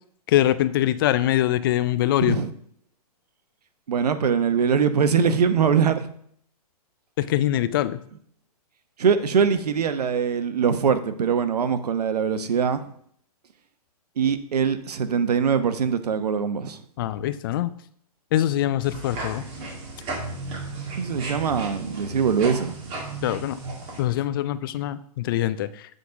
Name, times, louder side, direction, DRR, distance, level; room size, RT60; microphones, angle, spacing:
voice 1, 0.3-2.4 7.2-8.0 17.0-17.7 18.3-19.4 23.2-23.6 24.0-25.7, left 13 dB, 35° left, 14 dB, 0.4 m, -23 dB
voice 2, 2.2-2.5 3.9-6.1 9.0-12.8 14.2-16.8 21.0-22.7, right 6 dB, 80° right, 11 dB, 1.0 m, -22 dB
sound 1, 18.8-24.0, right 3 dB, 25° right, 2.1 m, -34 dB
8.0 x 4.0 x 5.8 m, 0.64 s
hypercardioid pair, 140°, 20 cm